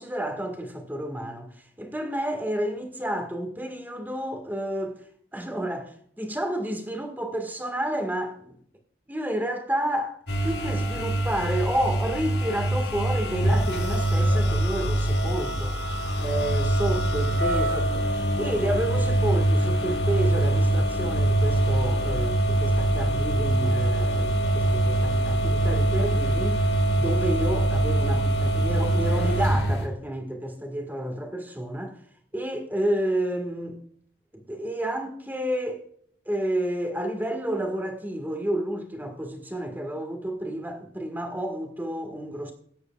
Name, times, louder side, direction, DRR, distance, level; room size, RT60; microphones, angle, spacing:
voice 1, 0.0-5.0 5.3-8.6 9.1-17.9 18.4-32.0 32.3-33.8 34.3-35.8 36.3-42.5, right 1 dB, 10° right, 1.8 m, -30 dB
sound 1, 10.3-29.9, right 1 dB, 65° left, 2.4 m, -24 dB
20.0 x 9.7 x 2.4 m
head